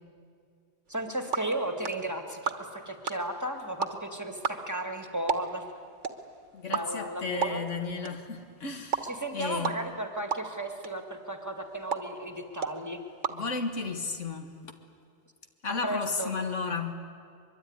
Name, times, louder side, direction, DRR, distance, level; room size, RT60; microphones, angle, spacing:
voice 1, 0.9-5.7 6.7-7.6 9.0-13.0 15.8-16.3, right 1 dB, 15° right, 5 dB, 2.0 m, -35 dB
sound 1, 0.9-14.2, right 5 dB, 75° right, 1.7 m, -37 dB
voice 2, 6.5-9.8 13.3-14.5 15.6-16.9, left 4 dB, 85° left, 6 dB, 2.1 m, -33 dB
23.5 x 23.0 x 9.7 m, 2.3 s
omnidirectional pair, 1.2 m